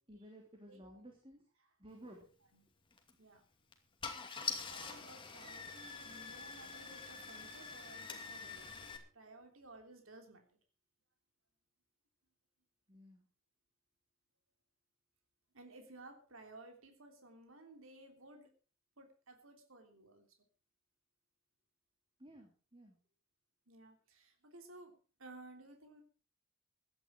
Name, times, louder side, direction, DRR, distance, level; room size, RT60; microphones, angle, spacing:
voice 1, 0.1-1.4 1.8-2.3 12.9-13.3 22.2-23.0, right 1 dB, 25° right, 1 dB, 3.1 m, -55 dB
voice 2, 0.7-1.1 1.6-1.7 2.5-2.7 3.2-3.4 4.1-10.6 15.5-18.5 19.0-20.3 23.7-26.0, right 2 dB, 70° right, 4 dB, 3.3 m, -57 dB
Car / Engine starting, 2.9-3.1 3.7-3.8 4.0-9.0, left 5 dB, 25° left, 2.5 m, -45 dB
16.5 x 11.5 x 4.5 m, 0.37 s
head